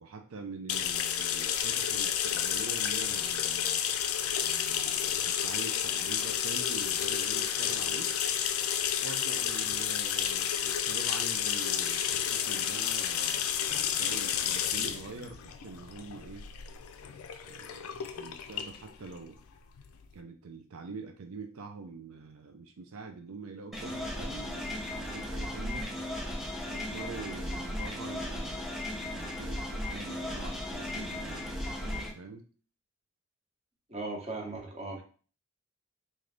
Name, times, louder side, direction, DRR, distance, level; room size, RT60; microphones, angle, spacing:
voice 1, 0.0-3.8 4.4-8.1 9.0-16.5 17.4-19.4 20.1-25.9 26.7-32.5, right 4 dB, 80° right, 5 dB, 0.5 m, -45 dB
sound 1, 0.7-20.1, left 9 dB, 90° left, 0.4 m, -31 dB
sound 2, 23.7-32.1, left 1 dB, ahead, 0.6 m, -36 dB
voice 2, 33.9-35.0, right 2 dB, 30° right, 0 dB, 0.9 m, -37 dB
3.8 x 2.7 x 3.3 m, 0.40 s
head